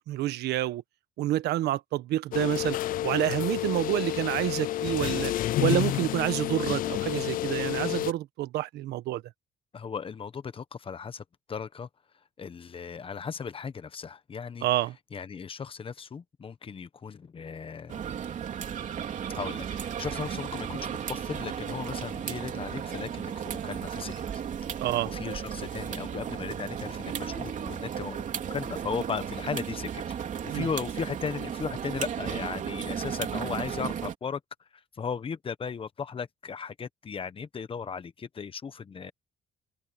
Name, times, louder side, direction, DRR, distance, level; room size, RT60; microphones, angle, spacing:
voice 1, 0.1-0.8 1.2-2.8 3.0-5.3 5.6-9.2 14.6-14.9 24.8-25.1 30.5-30.7, right 14 dB, 75° right, 1.3 m, -28 dB
sound 1, 2.3-8.1, left 14 dB, 55° left, 0.4 m, -29 dB
voice 2, 9.7-11.9 12.4-14.7 15.1-18.0 19.3-24.1 24.8-28.2 28.5-30.2 30.4-34.4 34.7-39.1, left 6 dB, 30° left, 1.2 m, -36 dB
sound 2, 17.9-34.2, right 8 dB, 50° right, 3.2 m, -35 dB
cardioid pair, 110°, 17 cm